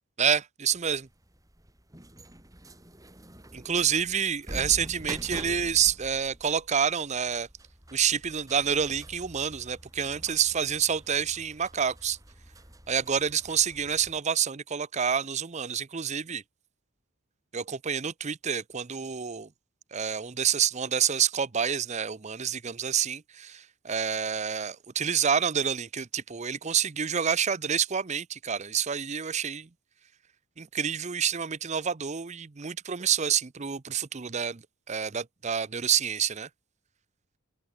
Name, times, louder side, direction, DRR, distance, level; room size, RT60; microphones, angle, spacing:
voice 1, 0.2-1.1 3.5-7.5 7.9-12.2 12.9-16.4 17.5-19.5 19.9-29.7 30.6-34.6 34.9-36.5, right 7 dB, 30° right, 0.6 m, -28 dB
sound 1, 0.7-14.2, right 1 dB, 15° right, 3.5 m, -46 dB
head